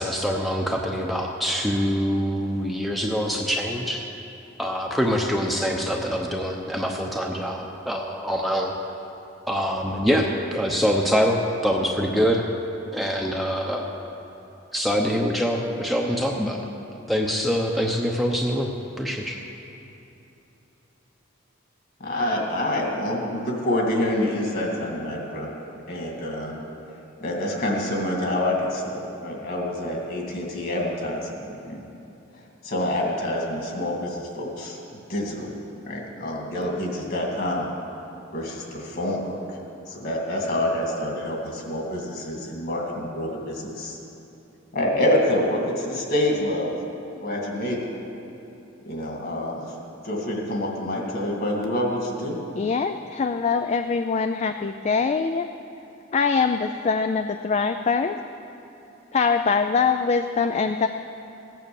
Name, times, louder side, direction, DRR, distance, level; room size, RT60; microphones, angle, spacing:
voice 1, 0.0-4.0 4.6-8.7 9.5-12.5 12.9-13.9 14.7-16.6 17.1-19.4, equal, ahead, 0 dB, 0.7 m, -24 dB
voice 2, 22.0-25.5 25.9-26.5 27.2-31.9 32.6-34.8 35.1-35.5 35.9-37.7 38.3-39.4 39.9-44.0 44.7-46.7 47.2-47.9 48.9-49.7 50.0-52.4, left 1 dB, 50° left, 0 dB, 2.4 m, -27 dB
voice 3, 52.6-55.5 56.1-58.2 59.1-60.9, left 5 dB, 30° left, 8 dB, 0.3 m, -23 dB
15.5 x 9.1 x 7.0 m, 2.9 s
head